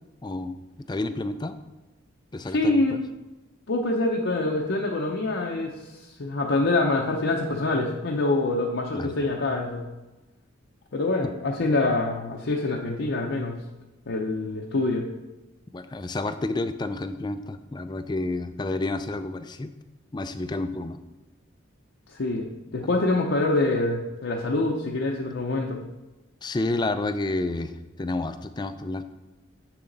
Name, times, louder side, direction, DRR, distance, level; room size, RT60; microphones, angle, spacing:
voice 1, 0.2-0.6 0.9-1.6 2.3-3.0 8.9-9.1 11.2-11.3 15.7-19.7 20.1-21.0 26.4-27.7 28.0-29.0, left 2 dB, 20° left, 10 dB, 0.4 m, -30 dB
voice 2, 2.5-3.0 3.7-5.9 6.2-9.8 10.9-13.6 14.1-15.1 22.1-22.5 22.7-25.8, left 2 dB, 65° left, -1 dB, 0.6 m, -25 dB
7.0 x 6.8 x 3.9 m, 1.0 s
head